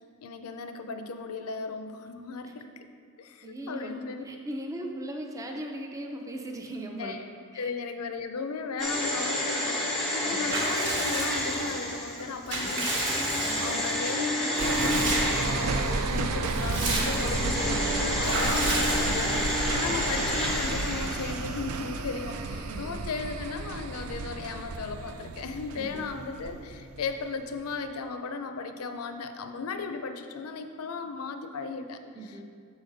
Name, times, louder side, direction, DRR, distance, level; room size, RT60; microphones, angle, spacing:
voice 1, 0.2-2.9 3.2-4.2 7.0-9.8 10.1-32.4, left 4 dB, 85° left, 7 dB, 0.5 m, -36 dB
voice 2, 3.4-7.1 7.5-7.7 10.2-10.5 13.5-13.8 22.7-23.0 25.7-26.1 32.1-32.4, right 1 dB, 15° right, 2 dB, 0.5 m, -38 dB
sound 1, 8.8-16.4 16.9-21.6 21.9-22.0, left 1 dB, 5° left, 0.9 m, -30 dB
Water / Bathtub (filling or washing) / Liquid, 10.5-11.7 12.2-13.9 14.6-15.5 15.9-16.0 16.3-17.5 18.2-19.5, right 2 dB, 60° right, 1.2 m, -32 dB
sound 2, 14.6-27.1 27.5-27.6, right 3 dB, 80° right, 0.4 m, -32 dB
7.1 x 5.1 x 3.9 m, 2.2 s
head